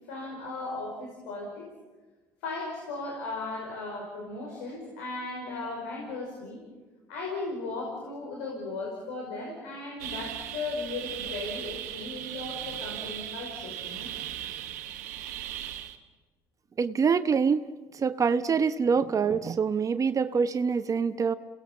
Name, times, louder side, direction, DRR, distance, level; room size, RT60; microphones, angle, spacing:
voice 1, 0.1-1.7 2.4-6.6 7.1-14.1, left 3 dB, 85° left, -1 dB, 5.4 m, -36 dB
sound 1, 10.0-16.0, right 11 dB, 90° right, 1.2 m, -38 dB
voice 2, 16.8-17.6 17.9-21.3, right 6 dB, 40° right, 11 dB, 1.0 m, -25 dB
29.5 x 18.5 x 7.3 m, 1.2 s
hypercardioid pair, 65°, 9 cm